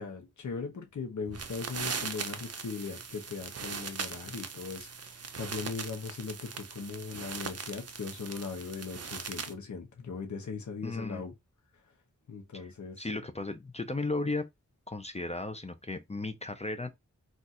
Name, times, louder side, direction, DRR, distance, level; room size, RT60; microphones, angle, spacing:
voice 1, 0.0-11.3 12.3-13.1, left 5 dB, 75° left, 0.7 m, -39 dB
sound 1, 1.3-9.5, right 5 dB, 55° right, 0.5 m, -40 dB
voice 2, 10.8-11.2 12.5-14.5 14.9-16.9, left 2 dB, 20° left, 0.4 m, -35 dB
2.4 x 2.4 x 4.0 m
wide cardioid pair, 70°, 30 cm